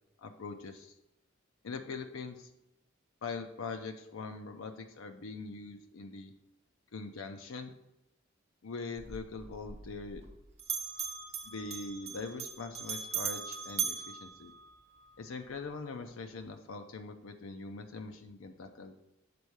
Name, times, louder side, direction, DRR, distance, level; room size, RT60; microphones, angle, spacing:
voice 1, 0.2-1.0 1.6-2.5 3.2-6.3 6.9-7.7 8.6-10.2 11.4-14.5 15.2-18.9, left 4 dB, 80° left, 6 dB, 0.5 m, -42 dB
Bell, 9.0-10.3 10.6-15.1, right 7 dB, 35° right, 0.8 m, -39 dB
6.9 x 4.3 x 4.7 m, 0.90 s
head